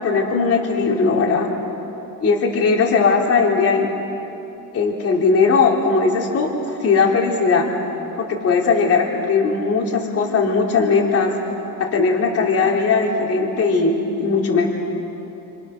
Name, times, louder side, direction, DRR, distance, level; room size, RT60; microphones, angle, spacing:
voice 1, 0.0-1.5 2.2-3.9 4.7-6.5 6.8-7.7 8.2-11.3 11.8-14.7, left 4 dB, 40° left, 0 dB, 3.3 m, -18 dB
29.5 x 28.0 x 6.4 m, 2.9 s
cardioid pair, 165°, 38 cm